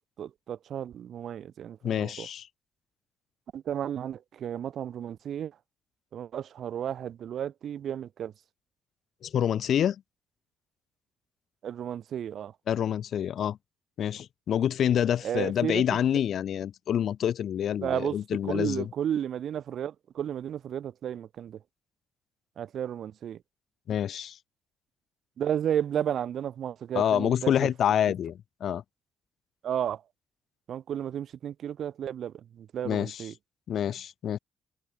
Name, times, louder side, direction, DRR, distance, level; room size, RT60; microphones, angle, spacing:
voice 1, 0.2-2.3 3.5-5.5 6.1-8.3 11.6-12.5 15.2-15.8 17.8-21.6 22.6-23.4 25.4-27.7 29.6-30.0 30.7-33.3, right 9 dB, 65° right, 2.1 m, -33 dB
voice 2, 1.8-2.5 9.2-10.0 12.7-13.6 14.0-18.9 23.9-24.4 26.9-28.8 32.8-33.3 33.7-34.4, left 9 dB, 65° left, 0.7 m, -27 dB
cardioid pair, 90°, 0 cm